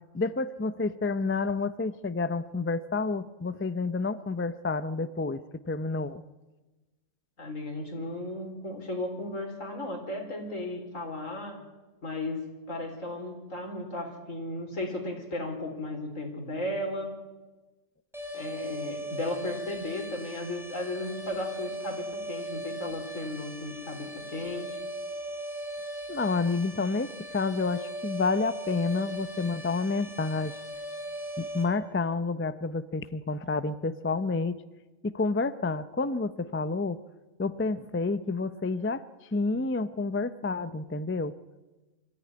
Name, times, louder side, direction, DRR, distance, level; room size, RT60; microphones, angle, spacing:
voice 1, 0.1-6.2 26.1-30.5 31.4-34.6 35.0-37.0 37.4-39.0 39.3-41.3, left 3 dB, 15° left, 13 dB, 0.4 m, -29 dB
voice 2, 7.4-11.6 12.0-17.1 18.3-24.8, left 1 dB, 80° left, 3 dB, 4.5 m, -35 dB
sound 1, 18.1-31.7, right 1 dB, ahead, 4.3 m, -39 dB
24.0 x 14.0 x 9.7 m, 1.2 s
omnidirectional pair, 1.3 m